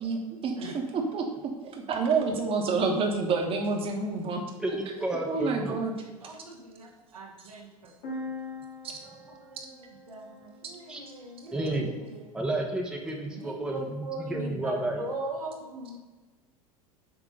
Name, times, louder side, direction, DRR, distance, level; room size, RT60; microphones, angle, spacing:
voice 1, 0.0-1.3 1.6-4.4 5.3-5.9 6.2-6.3, right 4 dB, 30° right, 2 dB, 1.3 m, -28 dB
voice 2, 4.6-5.8 10.9-11.0 11.5-11.9 12.3-15.0, right 2 dB, 5° right, 0 dB, 1.0 m, -31 dB
voice 3, 5.3-5.8 6.0-7.9 9.0-12.3 13.3-16.0, right 2 dB, 75° right, 0 dB, 1.4 m, -41 dB
sound 1, 8.0-11.8, left 2 dB, 45° left, 2.5 m, -43 dB
7.8 x 3.6 x 5.4 m, 1.3 s
figure-of-eight pair, 80°, 19 cm